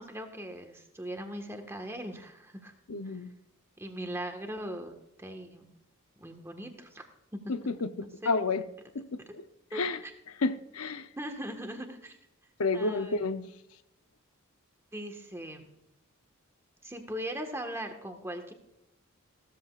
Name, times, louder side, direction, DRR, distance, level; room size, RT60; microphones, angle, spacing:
voice 1, 0.0-2.7 3.0-3.1 3.8-4.9 5.2-5.6 6.2-7.1 7.3-7.4 8.0-8.3 9.3-9.4 9.7-10.1 11.2-12.2 12.7-13.4 14.9-15.7 16.8-18.5, right 1 dB, 10° right, 4 dB, 1.5 m, -39 dB
voice 2, 2.9-3.3 7.7-8.6 8.9-9.2 9.7-10.0 10.4-11.1 12.6-13.5, left 3 dB, 85° left, 10 dB, 0.8 m, -30 dB
15.5 x 14.0 x 2.5 m, 0.85 s
head